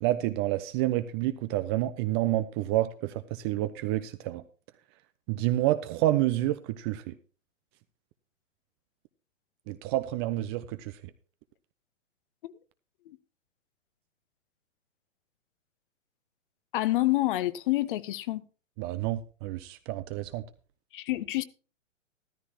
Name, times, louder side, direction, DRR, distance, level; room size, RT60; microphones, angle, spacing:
voice 1, 0.0-4.4 5.3-7.1 9.7-11.0 18.8-20.4, right 15 dB, 20° right, 0.5 m, -29 dB
voice 2, 16.7-18.4 20.9-21.4, left 17 dB, 40° left, 1.0 m, -28 dB
14.0 x 13.5 x 2.9 m
figure-of-eight pair, 120°, 38 cm